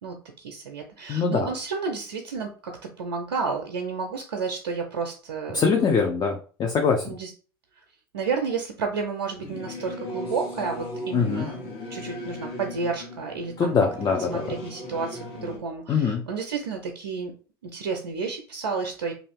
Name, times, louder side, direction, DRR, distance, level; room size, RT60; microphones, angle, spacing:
voice 1, 0.0-5.9 7.0-7.3 8.1-13.7 14.3-17.3 17.7-19.1, right 5 dB, 90° right, 3 dB, 0.5 m, -31 dB
voice 2, 1.1-1.5 5.5-7.1 11.1-11.5 13.6-14.4 15.9-16.3, left 5 dB, 30° left, 3 dB, 0.6 m, -23 dB
Singing / Musical instrument, 9.4-15.6, left 1 dB, 50° left, 1.4 m, -37 dB
2.6 x 2.3 x 3.5 m, 0.39 s
hypercardioid pair, 80°, 13 cm